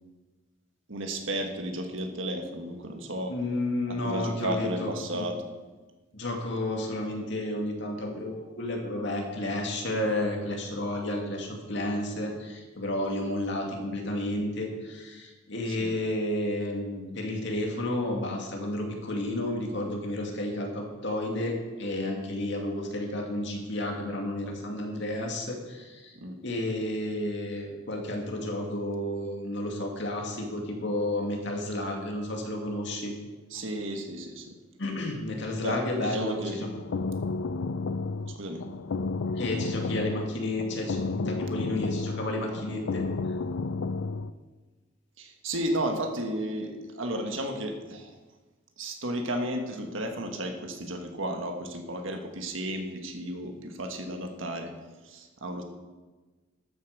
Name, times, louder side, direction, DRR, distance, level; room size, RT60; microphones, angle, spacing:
voice 1, 0.9-3.4 3.9-5.4 15.7-15.9 26.2-26.4 33.5-34.6 35.6-36.6 38.3-38.6 45.2-48.2 48.8-54.7 55.0-55.6, right 1 dB, 70° right, 4 dB, 1.7 m, -33 dB
voice 2, 3.3-5.3 6.1-26.2 26.4-33.1 34.8-36.7 39.3-43.0, left 1 dB, 60° left, 1 dB, 2.4 m, -31 dB
sound 1, 36.5-44.3, left 3 dB, 75° left, 0.5 m, -32 dB
12.5 x 8.4 x 6.7 m, 1.3 s
head